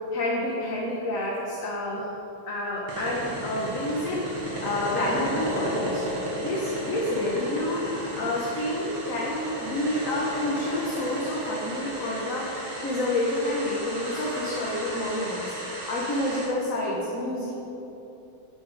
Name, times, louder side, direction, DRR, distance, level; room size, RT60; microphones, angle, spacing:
voice 1, 0.1-2.1 2.5-7.8 8.1-12.5 12.8-15.5 15.9-17.5, left 1 dB, 45° left, -4 dB, 1.5 m, -29 dB
sound 1, 2.9-16.5, right 1 dB, 75° right, 2.8 m, -34 dB
10.0 x 9.9 x 4.9 m, 2.9 s
omnidirectional pair, 2.3 m